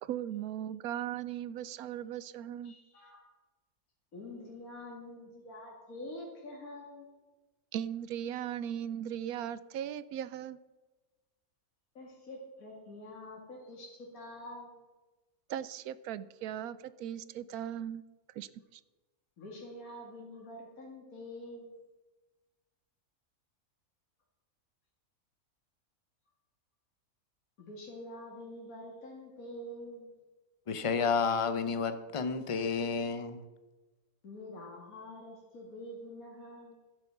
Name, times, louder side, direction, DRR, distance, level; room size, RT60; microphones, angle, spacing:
voice 1, 0.0-2.7 7.7-10.6 15.5-18.0 18.3-18.8, right 10 dB, 75° right, 17 dB, 1.1 m, -38 dB
voice 2, 2.6-3.3 4.1-7.1 11.9-14.8 19.4-21.8 27.6-30.1 34.2-36.8, left 1 dB, 65° left, -2 dB, 2.6 m, -46 dB
voice 3, 30.7-33.4, left 5 dB, 30° left, 10 dB, 0.6 m, -31 dB
12.5 x 10.5 x 5.9 m, 1.2 s
omnidirectional pair, 1.6 m